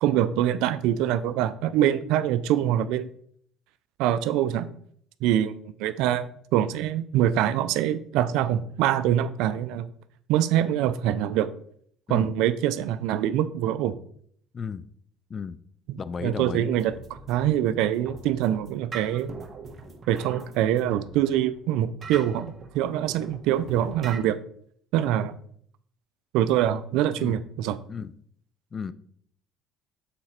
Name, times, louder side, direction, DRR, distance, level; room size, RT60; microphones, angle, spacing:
voice 1, 0.0-3.1 4.0-4.7 5.2-6.3 6.5-9.9 10.3-11.5 12.1-13.9 15.9-16.9 17.3-19.3 20.1-24.4 24.9-25.4 26.3-27.8, right 11 dB, 80° right, 14 dB, 0.4 m, -24 dB
voice 2, 14.5-14.9 15.3-15.6 16.0-16.7 27.2-27.4 27.9-28.1 28.7-28.9, left 6 dB, 35° left, 16 dB, 0.4 m, -33 dB
sound 1, 16.7-24.2, right 4 dB, 40° right, 1.2 m, -43 dB
7.0 x 4.2 x 4.3 m, 0.63 s
supercardioid pair, 90°, 0 cm